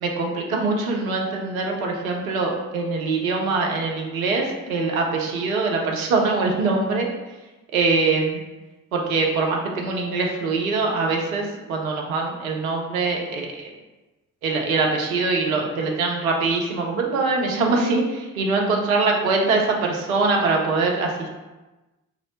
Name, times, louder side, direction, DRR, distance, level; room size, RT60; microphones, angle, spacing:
voice 1, 0.0-7.1 7.7-8.4 8.9-13.7 14.4-21.3, right 3 dB, 90° right, 0 dB, 0.5 m, -23 dB
4.2 x 2.0 x 2.7 m, 1.1 s
hypercardioid pair, 40°, 41 cm